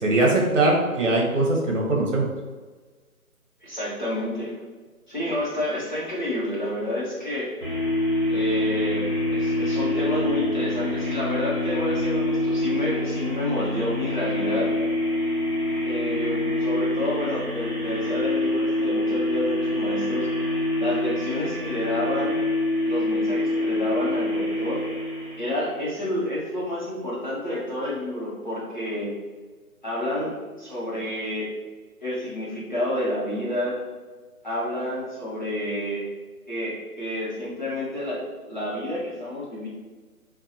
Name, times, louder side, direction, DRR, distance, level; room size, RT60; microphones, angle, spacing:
voice 1, 0.0-2.3, right 2 dB, 55° right, -1 dB, 1.0 m, -21 dB
voice 2, 3.6-4.5 5.1-7.5 8.3-14.7 15.8-20.3 20.8-22.4 22.9-24.8 25.4-29.1 29.8-31.5 32.0-33.8 34.4-36.1 36.5-39.7, left 1 dB, 30° left, -8 dB, 0.9 m, -29 dB
sound 1, 7.6-25.9, left 1 dB, 35° right, 1.5 m, -26 dB
4.4 x 2.3 x 2.7 m, 1.4 s
figure-of-eight pair, 175°, 45 cm